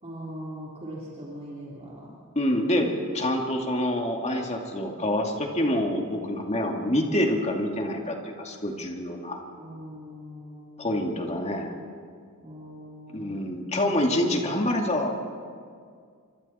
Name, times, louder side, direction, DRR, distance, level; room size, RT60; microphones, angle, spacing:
voice 1, 0.0-2.2 9.5-11.2 12.4-13.5, equal, 30° right, -6 dB, 3.5 m, -41 dB
voice 2, 2.4-9.4 10.8-11.7 13.1-15.1, left 1 dB, 30° left, 2 dB, 2.3 m, -26 dB
27.0 x 25.0 x 4.3 m, 2.2 s
head